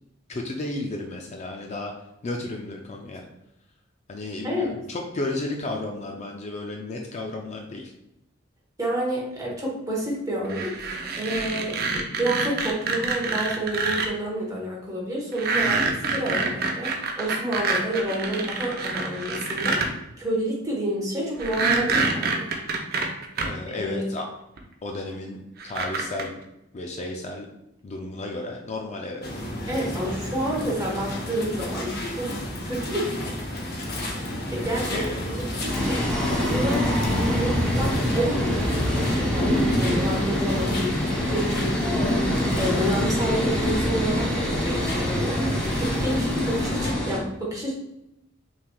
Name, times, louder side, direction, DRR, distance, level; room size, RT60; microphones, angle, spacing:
voice 1, 0.3-1.9 2.2-3.2 4.1-7.9 23.4-24.3 24.8-26.3 26.7-27.5 27.8-29.3 34.9-35.4, left 2 dB, 35° left, 2 dB, 0.4 m, -33 dB
voice 2, 4.4-4.9 8.8-10.9 11.2-19.9 20.2-22.5 23.7-24.0 29.7-32.4 32.6-33.2 34.5-36.0 36.3-38.7 38.9-42.3 42.5-47.7, right 1 dB, 15° right, -3 dB, 1.1 m, -29 dB
sound 1, 10.5-14.1 15.3-19.9 21.4-23.5 24.6-24.7 25.6-26.2, right 4 dB, 50° right, 0.6 m, -26 dB
sound 2, 29.2-46.9, equal, 50° left, 0.8 m, -30 dB
sound 3, 35.7-47.2, left 1 dB, 5° left, 0.8 m, -26 dB
5.7 x 3.2 x 2.3 m, 0.84 s
head